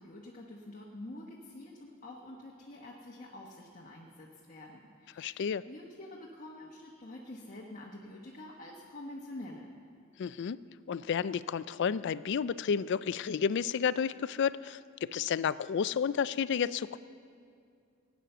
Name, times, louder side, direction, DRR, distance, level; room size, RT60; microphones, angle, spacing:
voice 1, 0.0-9.7, left 1 dB, 40° left, -2 dB, 1.2 m, -47 dB
voice 2, 5.2-5.6 10.2-10.6 10.9-17.0, left 7 dB, 55° left, 17 dB, 0.4 m, -31 dB
17.5 x 9.3 x 6.7 m, 2.3 s
head